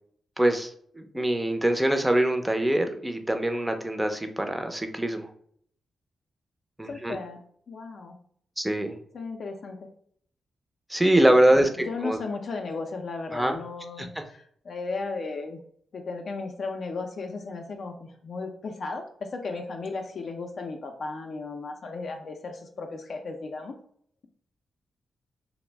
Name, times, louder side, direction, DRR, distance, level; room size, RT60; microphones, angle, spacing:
voice 1, 0.4-5.3 6.8-7.2 8.6-8.9 10.9-12.2 13.3-13.6 14.0-14.1, right 1 dB, 10° right, 5 dB, 0.4 m, -24 dB
voice 2, 6.9-7.4 7.7-8.2 9.1-9.9 11.9-15.6 15.9-23.8, left 3 dB, 65° left, 4 dB, 0.4 m, -35 dB
2.3 x 2.0 x 3.3 m, 0.63 s
cardioid pair, 70°, 0 cm